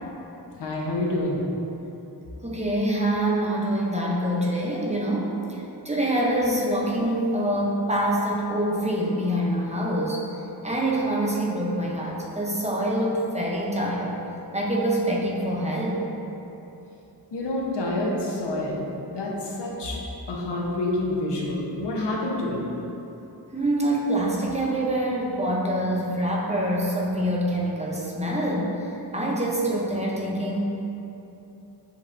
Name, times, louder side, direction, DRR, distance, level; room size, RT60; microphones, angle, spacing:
voice 1, 0.6-1.4 17.3-20.0 20.3-22.6, left 1 dB, 85° left, -3 dB, 0.8 m, -28 dB
voice 2, 2.4-5.3 5.8-10.2 10.6-14.2 14.5-16.0 23.5-28.7 29.1-30.6, right 1 dB, 15° right, -4 dB, 0.5 m, -25 dB
6.9 x 2.8 x 2.4 m, 3.0 s
wide cardioid pair, 115°, 40 cm